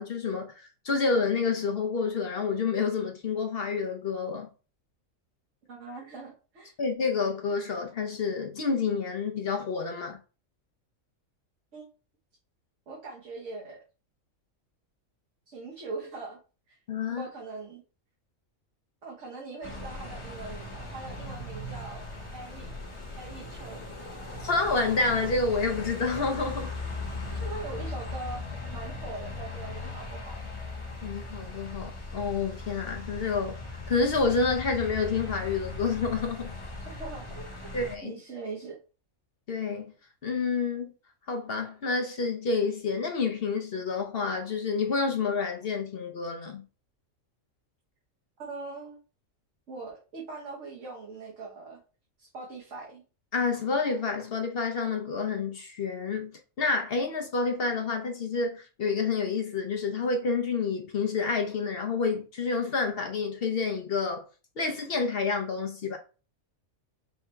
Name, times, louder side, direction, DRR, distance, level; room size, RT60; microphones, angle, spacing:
voice 1, 0.0-4.5 6.8-10.2 16.9-17.3 24.4-26.7 31.0-36.5 37.7-38.1 39.5-39.9 40.2-40.9 41.3-46.6 53.3-64.2 64.6-66.0, left 4 dB, 55° left, 0.8 m, -29 dB
voice 2, 5.7-6.7 11.7-11.9 12.9-13.8 15.5-16.4 16.7-16.8 17.1-17.8 19.0-22.1 22.3-22.7 23.2-23.9 27.3-28.4 28.7-30.5 36.8-38.8 48.4-49.0 49.7-51.8 52.2-53.0, right 3 dB, 65° right, 1.4 m, -41 dB
sound 1, 19.6-38.0, left 2 dB, 25° left, 1.1 m, -38 dB
5.5 x 2.8 x 3.3 m
omnidirectional pair, 1.4 m